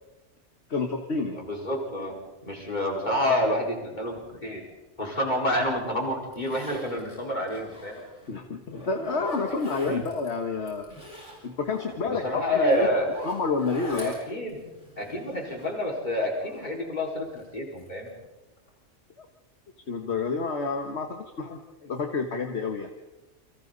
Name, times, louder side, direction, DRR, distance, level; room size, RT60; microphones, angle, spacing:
voice 1, 0.7-1.4 8.3-10.8 11.4-12.9 13.2-14.1 19.2-19.3 19.9-22.9, left 4 dB, 65° left, 4 dB, 1.7 m, -29 dB
voice 2, 1.4-4.6 5.0-8.0 9.8-10.0 12.0-13.1 14.0-14.7 15.0-18.1, left 1 dB, 40° left, -1 dB, 5.0 m, -28 dB
Zipper (clothing), 6.3-8.3 8.7-10.3 10.6-15.8 16.2-17.4 17.8-18.2 18.6-18.7, left 1 dB, 90° left, 7.3 m, -42 dB
29.5 x 24.0 x 4.0 m, 1.1 s
omnidirectional pair, 1.2 m